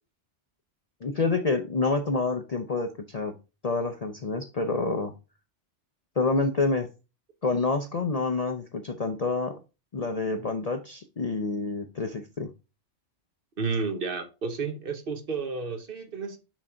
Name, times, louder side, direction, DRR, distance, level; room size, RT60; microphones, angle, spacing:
voice 1, 1.0-3.3 3.6-5.1 6.2-6.9 7.4-9.6 9.9-12.5, left 3 dB, 45° left, 0.5 m, -28 dB
voice 2, 13.6-16.4, right 4 dB, 50° right, 1.1 m, -31 dB
6.2 x 3.7 x 4.3 m
omnidirectional pair, 1.2 m